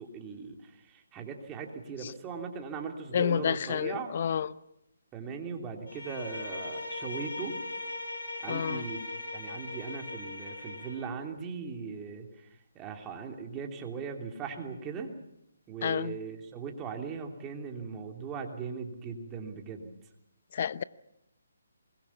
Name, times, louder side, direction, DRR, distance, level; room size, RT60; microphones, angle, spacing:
voice 1, 0.0-4.1 5.1-7.6 8.4-9.1 9.3-12.5 12.7-15.1 15.7-19.9, right 5 dB, 15° right, 3.1 m, -39 dB
voice 2, 3.1-4.5 8.5-8.8 15.8-16.2 20.5-20.8, left 8 dB, 45° left, 0.8 m, -29 dB
Bowed string instrument, 5.8-11.0, left 2 dB, 80° left, 7.9 m, -39 dB
24.0 x 21.5 x 7.2 m
hypercardioid pair, 155°, 0 cm